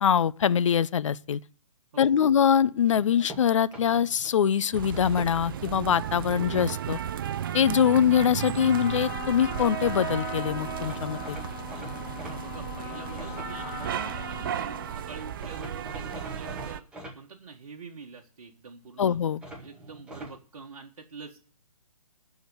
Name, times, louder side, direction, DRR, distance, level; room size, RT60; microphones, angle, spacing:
voice 1, 0.0-1.4 2.0-7.0 7.5-11.4 19.0-19.4, left 8 dB, 55° left, 0.6 m, -23 dB
voice 2, 1.9-2.4 12.3-16.8 17.1-19.2 19.6-21.4, right 5 dB, 60° right, 1.6 m, -45 dB
sound 1, 2.9-4.3 4.9-5.7 6.1-6.7 9.8-9.9 10.1-10.2 10.8-14.3 15.4-17.2 19.4-20.4, right 1 dB, 5° right, 2.0 m, -44 dB
sound 2, 4.7-16.8, right 10 dB, 35° right, 0.5 m, -34 dB
Trumpet, 8.5-15.3, left 10 dB, 30° left, 1.4 m, -40 dB
13.0 x 5.2 x 8.2 m
figure-of-eight pair, 145°, 19 cm